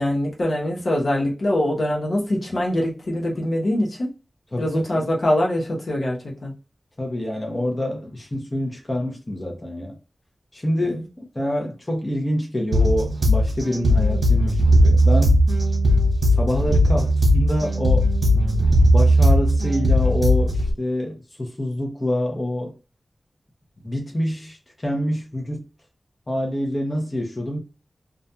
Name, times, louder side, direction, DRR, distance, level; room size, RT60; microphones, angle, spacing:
voice 1, 0.0-4.1 4.6-6.5 10.8-11.0, left 1 dB, 75° left, 0.9 m, -23 dB
voice 2, 4.5-5.1 7.0-10.0 10.5-11.0 11.3-15.4 16.4-18.1 18.8-22.7 23.8-25.6 26.3-27.6, left 1 dB, 30° left, 0.7 m, -26 dB
sound 1, 12.7-20.7, equal, 65° right, 1.0 m, -18 dB
2.4 x 2.2 x 2.7 m
wide cardioid pair, 100°, 0 cm